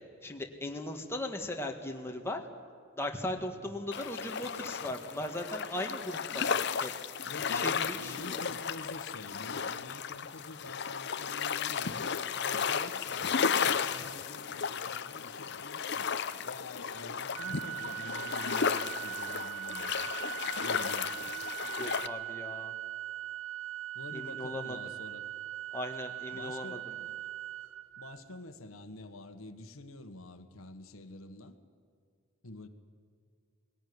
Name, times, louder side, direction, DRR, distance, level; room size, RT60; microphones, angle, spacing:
voice 1, 0.2-2.4 2.9-6.9 7.5-8.4 21.6-22.7 24.1-24.8 25.7-26.9, left 1 dB, 10° left, 2 dB, 1.8 m, -38 dB
sound 1, 3.9-22.1, left 6 dB, 55° left, 0.8 m, -34 dB
voice 2, 7.2-16.1 16.4-19.9 20.6-21.2 23.9-25.2 26.3-27.1 28.0-31.6 32.4-32.7, left 2 dB, 90° left, 8 dB, 1.5 m, -47 dB
Organ, 17.3-28.4, right 13 dB, 70° right, 0.5 m, -40 dB
20.0 x 17.0 x 9.6 m, 2.3 s
head